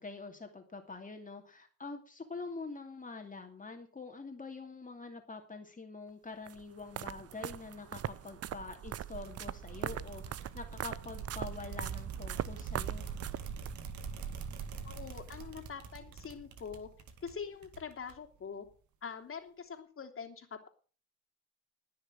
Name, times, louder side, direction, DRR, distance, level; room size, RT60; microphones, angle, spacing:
voice 1, 0.0-13.1, left 3 dB, 25° left, 4 dB, 2.7 m, -45 dB
sound 1, 6.5-13.8, right 11 dB, 50° right, 0.7 m, -41 dB
sound 2, 9.2-18.4, right 5 dB, 65° right, 2.3 m, -45 dB
voice 2, 14.8-16.9 17.2-18.6 19.0-20.7, left 6 dB, 40° left, 3 dB, 3.1 m, -44 dB
19.5 x 6.6 x 6.3 m, 0.40 s
supercardioid pair, 70°, 32 cm